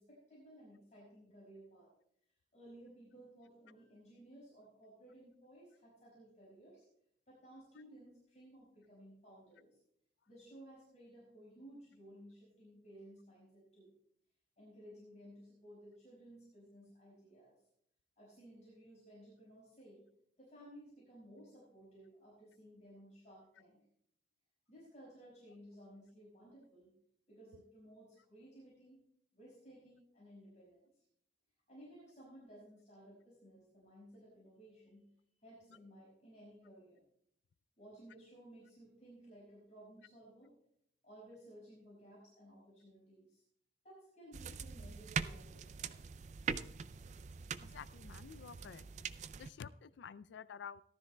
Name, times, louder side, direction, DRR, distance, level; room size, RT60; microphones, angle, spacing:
voice 1, 0.0-1.9 2.5-6.8 7.3-9.8 10.3-13.9 14.6-17.5 18.2-20.0 20.4-23.8 24.7-26.9 27.3-29.0 29.3-30.9 31.7-35.0 35.4-37.0 37.8-40.6 41.0-43.4 43.8-46.0, right 1 dB, 40° left, -6 dB, 5.1 m, -57 dB
sound 1, 44.3-49.5, right 6 dB, 40° right, 0.4 m, -43 dB
voice 2, 47.6-48.9 49.4-50.8, left 7 dB, 75° left, 16 dB, 0.4 m, -50 dB
17.5 x 12.5 x 2.2 m, 0.71 s
head